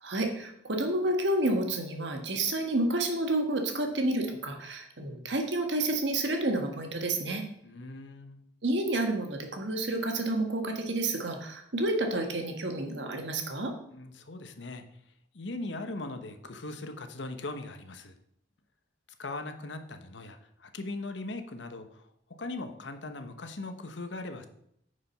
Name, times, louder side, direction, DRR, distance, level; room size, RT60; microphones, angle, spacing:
voice 1, 0.0-7.4 8.6-13.7, right 1 dB, 70° right, 4 dB, 1.6 m, -30 dB
voice 2, 7.6-8.4 13.9-14.8 15.3-18.1 19.2-22.0 22.4-24.5, left 2 dB, 70° left, 7 dB, 1.0 m, -39 dB
9.5 x 5.1 x 5.6 m, 0.73 s
head